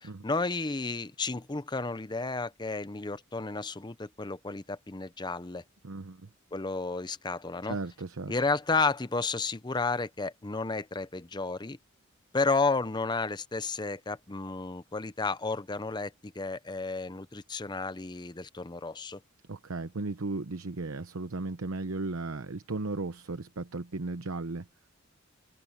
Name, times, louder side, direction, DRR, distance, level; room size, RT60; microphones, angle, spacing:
voice 1, 0.0-5.6 6.5-7.8 8.3-11.8 12.3-19.2, left 3 dB, 20° left, 0.6 m, -32 dB
voice 2, 5.8-6.3 7.6-8.3 19.5-24.7, right 3 dB, 85° right, 0.9 m, -35 dB
open air
head